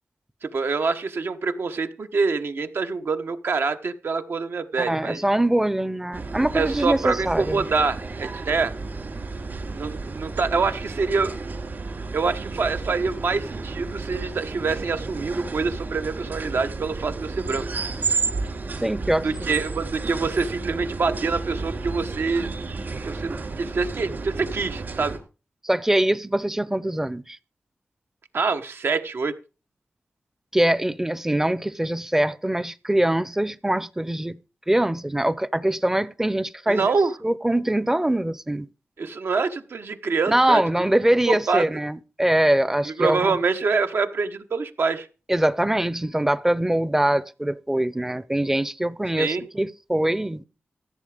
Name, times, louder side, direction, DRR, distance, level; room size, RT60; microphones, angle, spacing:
voice 1, 0.4-5.2 6.5-8.7 9.7-11.3 12.1-17.7 19.2-22.5 23.0-25.2 28.3-29.4 36.7-37.1 39.0-40.6 41.3-41.7 42.9-45.1 49.2-49.5, right 4 dB, 70° right, 1.2 m, -25 dB
voice 2, 4.8-7.7 18.8-19.3 25.6-27.4 30.5-34.4 34.7-36.9 37.2-38.7 40.3-43.4 45.3-50.4, right 1 dB, 10° right, 0.6 m, -23 dB
sound 1, 6.1-25.2, right 3 dB, 55° right, 3.5 m, -32 dB
14.5 x 7.9 x 5.0 m
wide cardioid pair, 135°, 4 cm